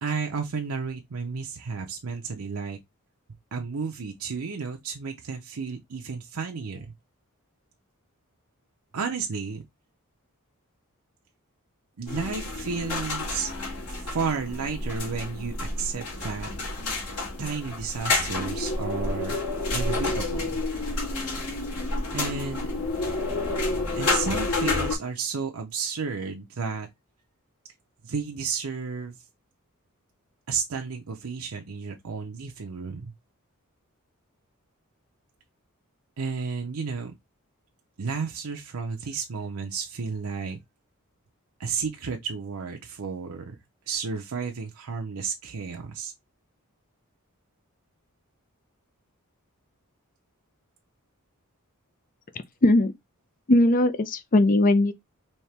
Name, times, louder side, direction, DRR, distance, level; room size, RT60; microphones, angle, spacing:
voice 1, 0.0-2.8 3.5-6.9 8.9-9.6 12.0-13.5 13.9-16.5 17.4-19.4 19.7-20.6 22.1-22.8 24.0-26.9 28.0-29.2 30.5-33.1 36.2-37.1 38.0-40.6 41.6-43.6 43.9-46.1, right 5 dB, 75° right, 0.6 m, -32 dB
sound 1, 12.1-25.0, left 2 dB, 85° left, 2.2 m, -29 dB
voice 2, 52.6-52.9 53.5-54.9, left 1 dB, 40° left, 0.5 m, -19 dB
4.3 x 2.8 x 3.3 m
head